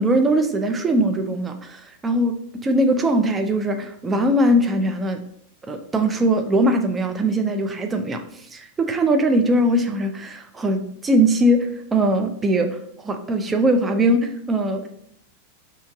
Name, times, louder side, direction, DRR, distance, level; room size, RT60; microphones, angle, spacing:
voice 1, 0.0-5.2 5.7-15.0, right 1 dB, 15° right, 5 dB, 0.4 m, -21 dB
4.4 x 2.8 x 3.5 m, 0.69 s
figure-of-eight pair, 90°, 0 cm